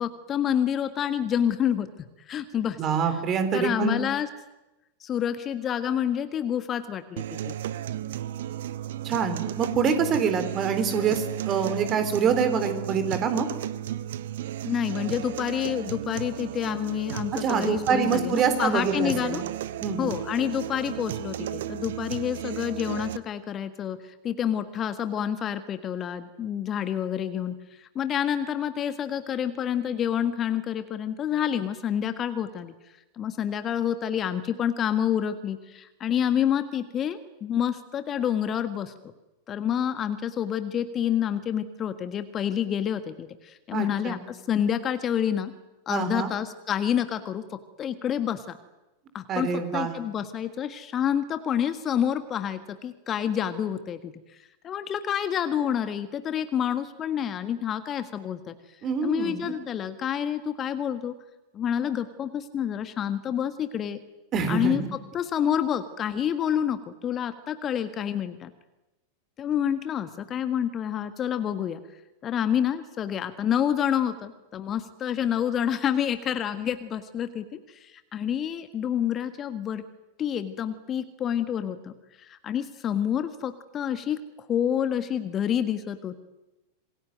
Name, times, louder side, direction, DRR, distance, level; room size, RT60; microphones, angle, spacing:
voice 1, 0.0-1.9 2.3-2.8 3.5-4.3 5.0-7.5 14.6-19.4 20.0-32.7 33.2-38.9 39.5-45.5 45.9-47.4 47.8-48.6 49.1-54.1 54.6-58.5 59.0-61.1 61.5-64.0 64.5-68.5 69.4-71.8 72.2-79.8 80.2-84.2 84.5-86.1, left 9 dB, 25° left, 11 dB, 1.6 m, -28 dB
voice 2, 2.8-4.0 9.0-13.5 17.4-19.4 19.8-20.1 43.7-44.2 45.9-46.3 49.3-50.0 58.8-59.5 64.3-64.8, right 6 dB, 30° right, 9 dB, 4.1 m, -26 dB
sound 1, 7.2-23.2, right 11 dB, 55° right, 1.0 m, -34 dB
27.0 x 21.5 x 9.3 m, 0.99 s
figure-of-eight pair, 90°, 0 cm